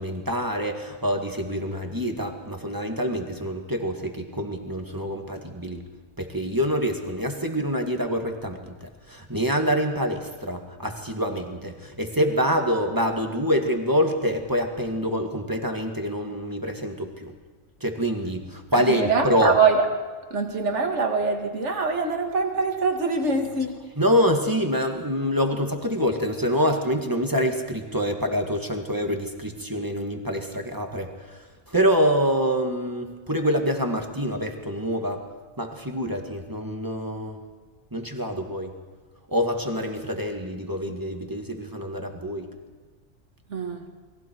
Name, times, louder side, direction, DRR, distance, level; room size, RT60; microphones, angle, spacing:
voice 1, 0.0-5.9 6.2-17.3 17.8-19.5 24.0-31.4 31.7-35.2 35.6-37.4 37.9-38.7 39.3-42.5, equal, 15° right, 3 dB, 1.9 m, -26 dB
voice 2, 18.7-19.8 20.3-23.7 43.5-43.9, right 4 dB, 60° right, 4 dB, 2.3 m, -24 dB
29.0 x 22.0 x 4.6 m, 1.4 s
omnidirectional pair, 1.4 m